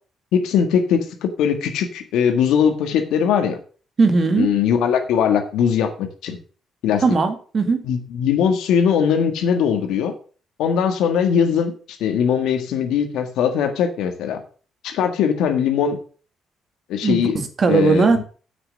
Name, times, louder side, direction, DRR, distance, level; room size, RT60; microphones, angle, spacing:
voice 1, 0.3-3.6 4.3-6.4 6.8-7.0 7.8-10.1 10.6-11.7 12.0-14.4 14.8-16.0 16.9-17.4 17.7-18.2, left 7 dB, 90° left, 6 dB, 1.7 m, -20 dB
voice 2, 4.0-4.5 7.0-7.8 17.0-18.2, right 4 dB, 40° right, 7 dB, 2.0 m, -18 dB
7.9 x 6.7 x 6.2 m, 0.40 s
cardioid pair, 90°, 0 cm